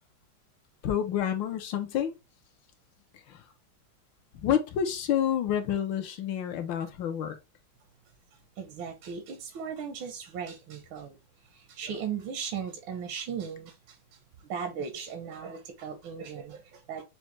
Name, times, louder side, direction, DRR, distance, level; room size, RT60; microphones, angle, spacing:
voice 1, 0.8-2.1 3.3-3.4 4.4-7.4, left 9 dB, 75° left, 1.3 m, -28 dB
voice 2, 8.6-11.2 11.5-14.0 14.4-17.0, right 7 dB, 90° right, 1.6 m, -37 dB
6.3 x 2.1 x 3.1 m
omnidirectional pair, 2.1 m